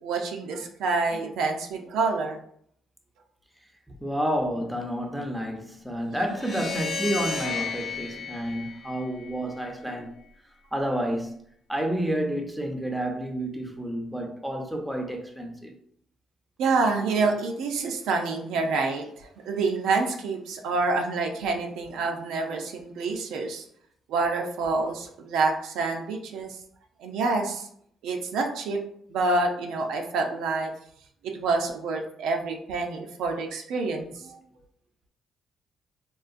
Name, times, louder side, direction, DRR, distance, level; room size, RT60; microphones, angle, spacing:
voice 1, 0.0-2.4 6.1-6.2 6.6-6.7 16.6-23.6 24.1-26.6 27.0-27.7 28.0-28.8 29.1-30.7 31.2-34.4, right 3 dB, 85° right, 0.5 m, -27 dB
voice 2, 4.0-10.1 10.7-11.3 11.7-15.7, equal, 5° right, 0.6 m, -30 dB
sound 1, 6.3-9.6, left 5 dB, 45° left, 0.7 m, -33 dB
3.8 x 2.4 x 2.5 m
cardioid pair, 90°, 0 cm